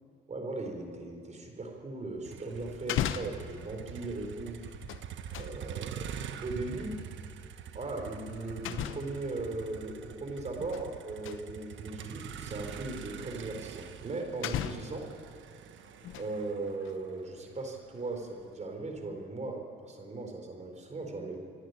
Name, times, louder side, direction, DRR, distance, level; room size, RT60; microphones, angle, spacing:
voice 1, 0.3-4.6 5.4-7.0 7.7-15.1 16.1-21.4, right 2 dB, 35° right, 4 dB, 4.4 m, -38 dB
sound 1, 2.2-2.3 2.7-3.5 4.6-5.6 7.2-7.3 8.6-9.2 10.4-10.9 11.2-11.4 12.3-12.4 13.8-13.9 14.4-15.0 15.8-16.4 16.8-16.9, left 11 dB, 85° left, 0.9 m, -36 dB
Motor vehicle (road), 2.2-18.4, right 8 dB, 75° right, 1.2 m, -45 dB
26.5 x 11.0 x 9.7 m, 2.4 s
cardioid pair, 90°, 20 cm